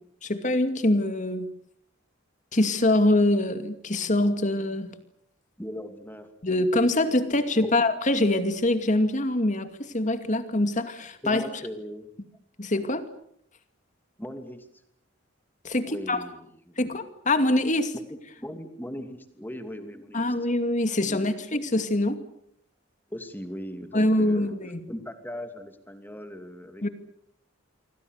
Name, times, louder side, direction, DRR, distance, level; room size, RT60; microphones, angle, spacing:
voice 1, 0.2-1.5 2.5-4.9 6.4-11.5 12.6-13.0 15.6-16.3 16.8-17.9 20.1-22.2 23.9-24.8 26.8-26.9, left 1 dB, 40° left, 9 dB, 2.5 m, -24 dB
voice 2, 5.6-6.3 7.6-7.7 11.2-12.1 14.2-14.7 15.8-16.8 18.1-20.3 21.0-21.2 23.1-24.5 24.9-26.9, equal, 10° left, 7 dB, 2.8 m, -39 dB
28.0 x 24.5 x 6.7 m, 0.68 s
head